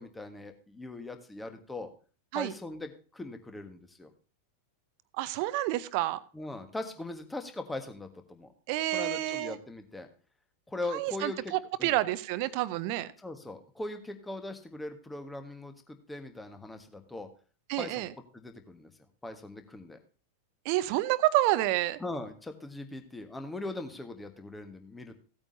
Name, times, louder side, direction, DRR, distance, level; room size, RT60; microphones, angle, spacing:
voice 1, 0.0-1.9 2.3-4.1 6.3-8.5 8.9-10.1 10.7-12.0 13.2-17.3 17.8-18.0 18.3-18.9 19.2-20.0 22.0-25.1, left 2 dB, 10° left, 1.4 m, -40 dB
voice 2, 5.2-6.2 8.7-9.6 10.9-13.1 17.7-18.1 20.6-22.0, right 16 dB, 45° right, 0.7 m, -29 dB
16.5 x 8.8 x 2.7 m
figure-of-eight pair, 90°, 0 cm